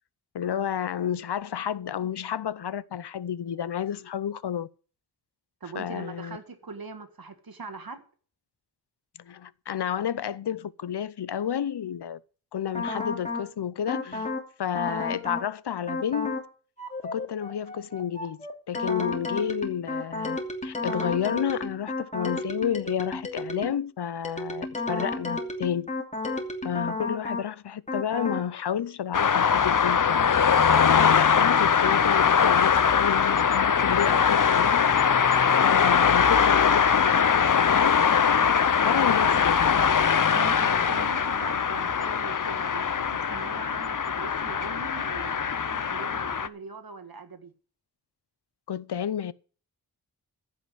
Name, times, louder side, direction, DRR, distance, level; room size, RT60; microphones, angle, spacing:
voice 1, 0.3-4.7 5.7-6.4 9.2-12.2 12.5-14.3 14.6-16.4 17.0-20.4 20.6-25.9 26.6-35.2 35.6-37.9 38.8-39.7 48.7-49.3, left 9 dB, 85° left, 0.7 m, -31 dB
voice 2, 5.6-8.0 38.9-39.4 40.3-47.5, right 4 dB, 65° right, 1.9 m, -41 dB
sound 1, 12.7-13.5 13.9-14.5 14.7-15.5 15.9-16.5 16.8-23.8 24.2-27.5 27.9-28.5, left 2 dB, 20° left, 2.8 m, -32 dB
sound 2, 29.1-46.5, left 7 dB, 55° left, 0.7 m, -22 dB
15.0 x 5.9 x 7.7 m
wide cardioid pair, 95°, 39 cm